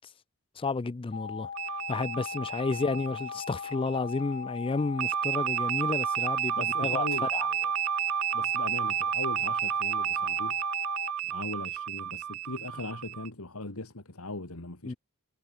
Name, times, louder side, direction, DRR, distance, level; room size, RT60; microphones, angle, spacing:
voice 1, 0.6-1.5 1.9-7.1 7.3-7.5 14.8-14.9, left 3 dB, 25° left, 0.4 m, -31 dB
sound 1, 1.1-11.1, left 6 dB, 45° left, 0.8 m, -39 dB
sound 2, 1.5-4.1 5.0-13.3, right 11 dB, 85° right, 0.6 m, -31 dB
voice 2, 6.6-7.7 8.3-10.6 11.2-15.0, left 2 dB, 70° left, 2.5 m, -39 dB
head